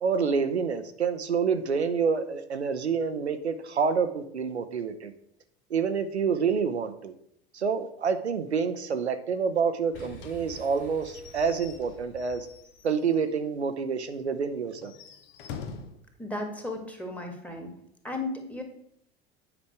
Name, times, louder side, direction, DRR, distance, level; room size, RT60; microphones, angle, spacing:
voice 1, 0.0-5.1 5.7-7.1 7.5-12.5 12.8-14.9, right 6 dB, 85° right, 8 dB, 0.6 m, -28 dB
Boom, 9.9-12.9, right 3 dB, 80° left, 2.1 m, -49 dB
Slam / Squeak / Wood, 10.2-13.4 13.7-13.8 14.1-14.2 14.7-16.0, left 6 dB, 60° left, 1.0 m, -45 dB
voice 2, 16.2-17.7 18.0-18.6, left 2 dB, 5° left, 3 dB, 1.7 m, -35 dB
8.8 x 5.1 x 4.7 m, 0.71 s
figure-of-eight pair, 70°, 32 cm